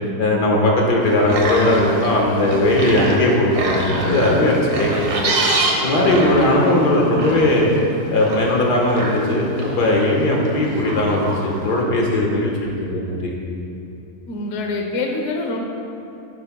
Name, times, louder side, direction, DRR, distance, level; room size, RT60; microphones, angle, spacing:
voice 1, 0.2-5.3 5.8-7.7 8.1-13.3, left 1 dB, 85° left, -2 dB, 1.9 m, -18 dB
sound 1, 1.0-11.8, right 2 dB, 85° right, 1.7 m, -26 dB
voice 2, 14.3-15.6, left 3 dB, 60° left, 1 dB, 1.1 m, -25 dB
11.0 x 10.5 x 2.3 m, 2.7 s
omnidirectional pair, 1.7 m